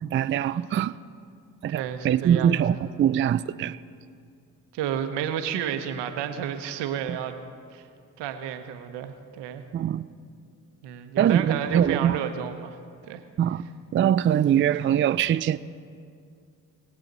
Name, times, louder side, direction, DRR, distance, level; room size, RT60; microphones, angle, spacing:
voice 1, 0.0-1.0 1.6-3.8 7.1-7.2 9.7-10.0 11.2-12.2 13.4-13.6 13.9-15.6, right 9 dB, 30° right, 0.4 m, -23 dB
voice 2, 1.7-2.6 4.7-7.4 7.7-7.9 8.2-9.6 10.8-12.8 13.1-13.2, right 9 dB, 75° right, 1.0 m, -31 dB
21.0 x 7.5 x 4.0 m
hypercardioid pair, 40°, 42 cm